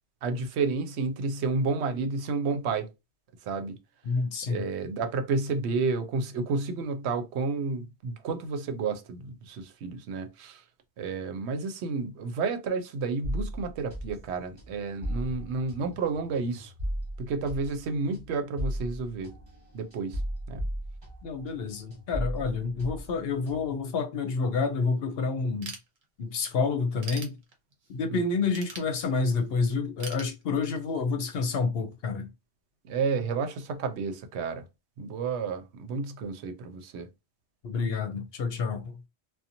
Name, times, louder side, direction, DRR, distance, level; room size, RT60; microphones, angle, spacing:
voice 1, 0.2-2.9 3.4-3.8 4.5-10.6 11.0-16.7 17.2-19.3 19.7-20.2 20.5-20.6 28.1-28.2 32.8-34.6 35.0-37.1, right 4 dB, 80° right, 0.8 m, -31 dB
voice 2, 4.0-4.6 21.2-25.7 26.2-27.4 27.9-32.3 37.6-39.0, left 4 dB, 65° left, 0.8 m, -29 dB
sound 1, 13.2-21.6 21.9-23.8, equal, 25° right, 1.1 m, -36 dB
Ratchet pawl / Tools, 25.6-26.4 26.8-27.9 28.5-29.5 30.0-31.0, right 4 dB, 50° right, 0.9 m, -42 dB
2.8 x 2.2 x 2.6 m
omnidirectional pair, 1.1 m